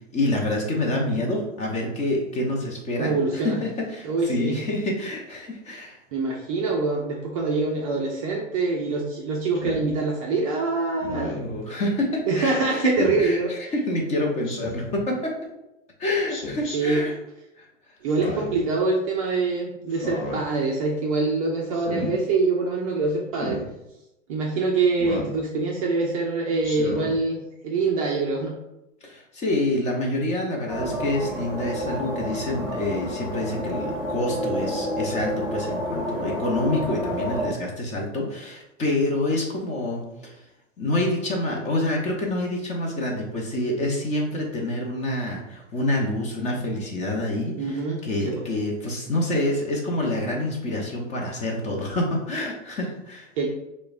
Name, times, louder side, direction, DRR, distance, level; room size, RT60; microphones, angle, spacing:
voice 1, 0.1-6.0 11.3-12.9 13.2-15.4 16.0-17.1 17.6-17.7 29.0-40.4 40.8-53.3, left 1 dB, 20° left, -1 dB, 0.6 m, -27 dB
voice 2, 3.0-3.6 4.0-4.6 6.1-11.3 12.3-13.5 16.7-17.0 18.0-23.6 24.3-28.5 47.6-48.4 53.4-53.5, right 3 dB, 30° right, -1 dB, 0.4 m, -25 dB
Speech synthesizer, 9.6-9.9 11.0-11.5 12.9-13.3 14.4-15.0 16.3-16.8 18.1-18.6 19.9-20.4 21.7-22.1 23.3-23.7 25.0-25.4 26.6-27.1, left 2 dB, 40° left, 0.9 m, -33 dB
sound 1, 30.7-37.5, equal, ahead, 1.3 m, -29 dB
6.2 x 2.1 x 2.4 m, 0.89 s
hypercardioid pair, 120°, 39 cm